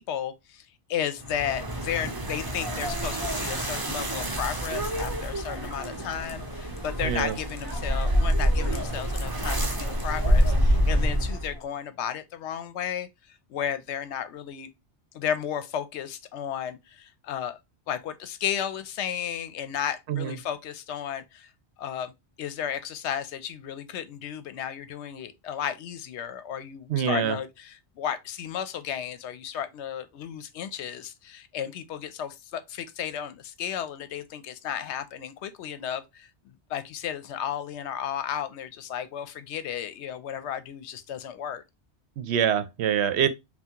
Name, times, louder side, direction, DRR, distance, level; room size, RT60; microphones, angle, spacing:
voice 1, 0.0-14.7 15.1-17.6 17.9-21.5 21.8-22.1 22.4-41.6, left 9 dB, 80° left, 0.9 m, -34 dB
sound 1, 1.2-11.6, equal, 25° right, 0.6 m, -27 dB
sound 2, 4.9-10.6, left 2 dB, 25° left, 0.7 m, -45 dB
voice 2, 7.0-7.4 20.1-20.4 26.9-27.4 42.2-43.3, right 9 dB, 75° right, 0.8 m, -25 dB
5.6 x 2.3 x 2.8 m
omnidirectional pair, 1.2 m